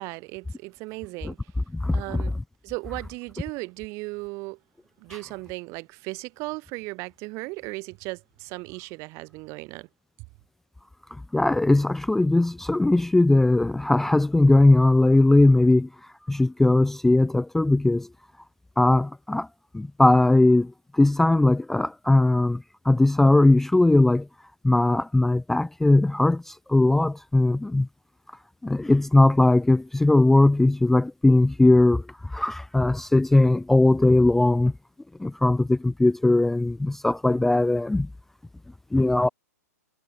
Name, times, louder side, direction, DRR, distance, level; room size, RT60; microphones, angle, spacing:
voice 1, 0.0-1.4 1.9-2.3 2.6-4.6 5.0-9.9, right 25 dB, 35° right, 4.5 m, -36 dB
voice 2, 1.7-2.2 11.3-15.9 16.3-18.1 18.8-19.5 19.7-24.3 24.6-27.9 28.6-34.7 35.2-38.1 38.9-39.3, left 2 dB, 5° left, 0.4 m, -19 dB
hypercardioid pair, 145°, 9 cm